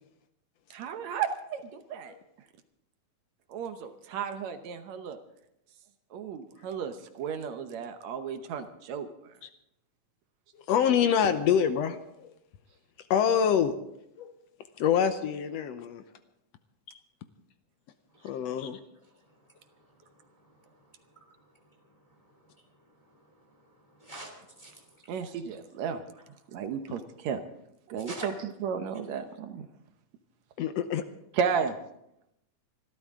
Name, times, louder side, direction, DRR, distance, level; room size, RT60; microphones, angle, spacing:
voice 1, 0.7-2.1 3.5-5.2 6.1-9.3 25.1-26.0 26.5-27.4 27.9-28.3 28.6-29.7 31.3-31.8, right 7 dB, 70° right, 8 dB, 2.0 m, -33 dB
voice 2, 10.7-12.0 13.1-13.7 14.2-14.3 14.8-16.0 18.2-18.8 30.6-31.0, left 8 dB, 75° left, 10 dB, 1.6 m, -25 dB
voice 3, 18.1-18.7 19.0-25.0 28.0-28.3, right 1 dB, 10° left, 2 dB, 2.2 m, -50 dB
25.0 x 12.5 x 3.7 m, 0.81 s
omnidirectional pair, 3.6 m